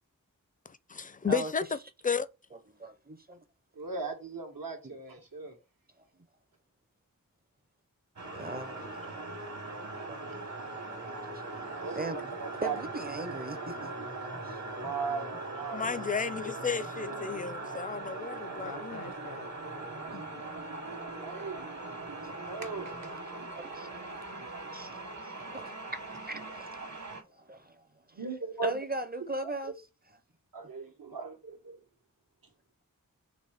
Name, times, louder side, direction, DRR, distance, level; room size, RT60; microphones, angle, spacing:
voice 1, 0.7-1.6 2.0-2.3 15.7-19.0, left 5 dB, 25° left, 0.4 m, -33 dB
voice 2, 2.8-3.4 8.3-9.2 10.1-10.4 11.0-12.3 12.6-13.9 14.4-14.6 17.2-17.3 23.6-24.1 24.7-24.9 25.2-26.0 26.2-26.7 27.4-28.2 28.6-29.7, right 2 dB, 30° right, 0.5 m, -39 dB
voice 3, 3.7-5.6 11.8-12.8 14.8-16.1 21.2-21.6 22.5-22.9 26.4-26.5 28.2-28.8 30.5-31.8, right 4 dB, 80° right, 1.1 m, -38 dB
sound 1, 8.2-27.2, right 2 dB, 55° right, 1.2 m, -40 dB
voice 4, 17.0-17.6 18.4-19.5 20.1-20.4, left 4 dB, 80° left, 0.9 m, -46 dB
4.0 x 3.1 x 3.4 m
wide cardioid pair, 50°, 34 cm